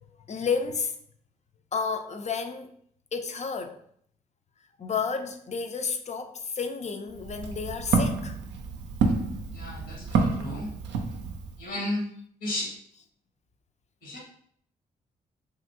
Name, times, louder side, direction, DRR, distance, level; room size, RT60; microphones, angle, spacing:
voice 1, 0.3-0.9 1.7-2.7 3.1-3.8 4.8-8.4, left 5 dB, 40° left, 0.4 m, -31 dB
Walk footsteps, 7.1-11.6, right 4 dB, 75° right, 0.4 m, -28 dB
voice 2, 9.5-10.7 11.6-12.0 12.4-12.7 14.0-14.2, left 1 dB, 75° left, 1.2 m, -33 dB
2.9 x 2.5 x 2.6 m
supercardioid pair, 45°, 19 cm